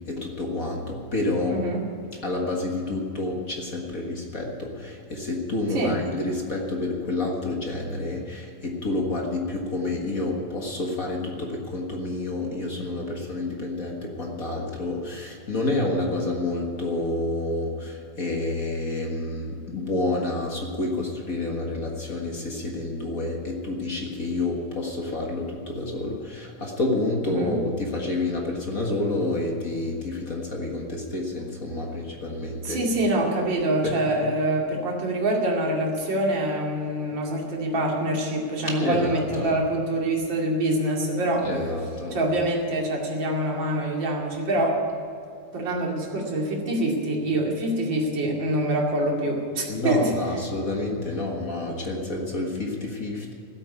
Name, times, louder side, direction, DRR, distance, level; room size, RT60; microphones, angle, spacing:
voice 1, 0.1-1.7 2.2-32.8 33.8-33.9 38.7-39.5 41.4-42.2 49.7-53.3, left 2 dB, 40° left, 0 dB, 1.4 m, -29 dB
voice 2, 1.5-1.8 5.7-6.0 27.2-27.6 32.6-41.5 42.1-44.8 45.5-50.4, right 1 dB, 40° right, -2 dB, 3.0 m, -25 dB
15.5 x 8.4 x 8.4 m, 2.5 s
omnidirectional pair, 3.4 m